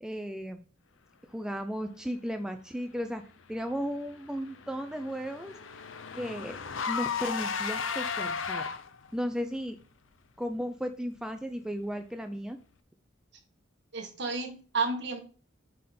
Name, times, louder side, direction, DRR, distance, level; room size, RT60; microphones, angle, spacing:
voice 1, 0.0-0.7 1.3-3.2 3.5-5.5 6.1-6.6 6.9-8.6 9.1-9.8 10.4-12.6, equal, 5° right, 6 dB, 0.4 m, -35 dB
Car / Engine, 4.1-9.1, left 6 dB, 85° left, 0.6 m, -35 dB
voice 2, 13.9-15.2, right 4 dB, 60° right, 2 dB, 1.6 m, -31 dB
7.5 x 3.6 x 4.3 m, 0.39 s
head